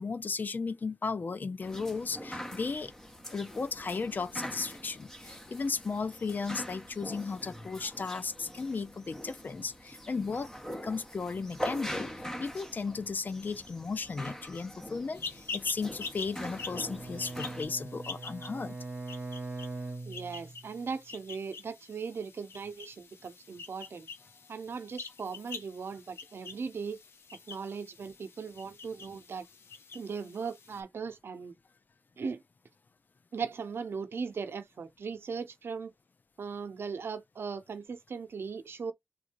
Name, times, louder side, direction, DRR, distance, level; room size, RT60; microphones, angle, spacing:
voice 1, 0.0-2.9 3.3-10.5 10.8-18.8, left 4 dB, 50° left, 0.5 m, -35 dB
sound 1, 1.6-17.6, equal, 10° left, 1.1 m, -43 dB
sound 2, 15.1-30.8, left 4 dB, 80° left, 0.8 m, -46 dB
Bowed string instrument, 16.4-20.8, right 3 dB, 30° right, 1.1 m, -42 dB
voice 2, 20.0-24.1 24.5-27.0 27.5-29.5 29.9-31.5 32.2-32.4 33.3-35.9 36.4-38.9, right 5 dB, 75° right, 0.7 m, -38 dB
3.6 x 2.6 x 4.4 m
wide cardioid pair, 80°, 4 cm